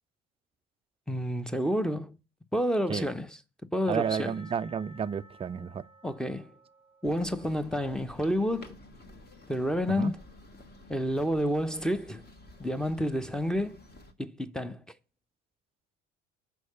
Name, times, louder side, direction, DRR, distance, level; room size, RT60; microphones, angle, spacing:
voice 1, 1.1-2.2 2.5-3.4 3.7-4.3 6.0-6.5 7.0-8.8 9.5-10.2 10.9-12.2 12.6-13.8 14.2-14.8, equal, ahead, 0.8 m, -29 dB
voice 2, 3.9-5.8 9.9-10.1, right 7 dB, 15° right, 0.4 m, -31 dB
Percussion, 4.0-8.9, right 1 dB, 90° left, 3.0 m, -57 dB
sound 1, 7.0-14.1, left 1 dB, 25° left, 1.6 m, -52 dB
6.2 x 5.6 x 6.7 m
figure-of-eight pair, 55°, 38 cm